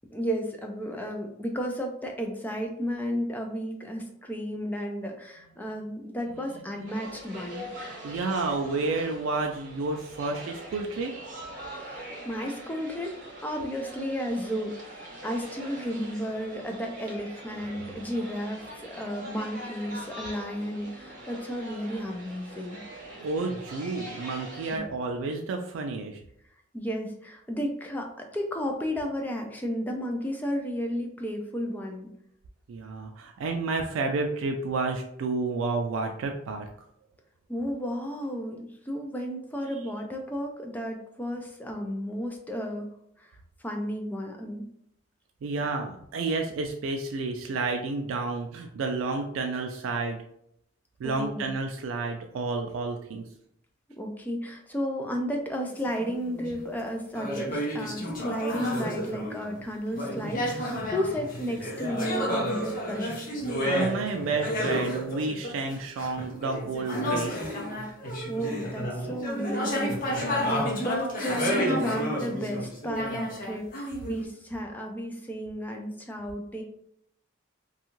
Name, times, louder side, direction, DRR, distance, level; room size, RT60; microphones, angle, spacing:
voice 1, 0.1-7.7 11.8-13.2 13.4-22.8 24.7-24.8 26.7-32.1 37.5-42.9 43.2-43.3 43.6-44.6 51.0-51.5 54.0-63.2 68.3-76.6, equal, 10° left, 2 dB, 0.4 m, -33 dB
sound 1, 6.9-24.8, right 1 dB, 40° right, 0.7 m, -43 dB
voice 2, 7.9-11.1 17.5-18.1 23.2-26.2 32.7-36.7 45.4-50.2 51.0-53.3 63.7-67.3, right 3 dB, 85° right, 3 dB, 0.3 m, -30 dB
sound 2, 55.7-56.6 57.1-59.6 59.9-74.2, equal, 45° left, 0.8 m, -31 dB
2.6 x 2.3 x 2.9 m, 0.73 s
head